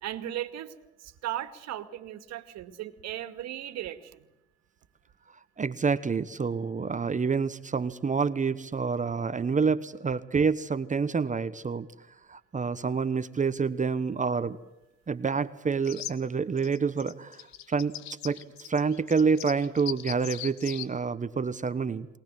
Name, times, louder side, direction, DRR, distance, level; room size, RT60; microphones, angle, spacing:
voice 1, 0.0-0.7 1.0-4.3, right 12 dB, 65° right, 11 dB, 2.2 m, -37 dB
voice 2, 5.6-11.9 12.3-14.6 15.1-17.4 17.7-17.9 18.2-22.1, right 5 dB, 25° right, 13 dB, 1.1 m, -28 dB
sound 1, 15.8-16.1 16.6-20.9, left 14 dB, 70° left, 1.4 m, -40 dB
23.0 x 19.0 x 7.6 m, 0.94 s
supercardioid pair, 70°, 29 cm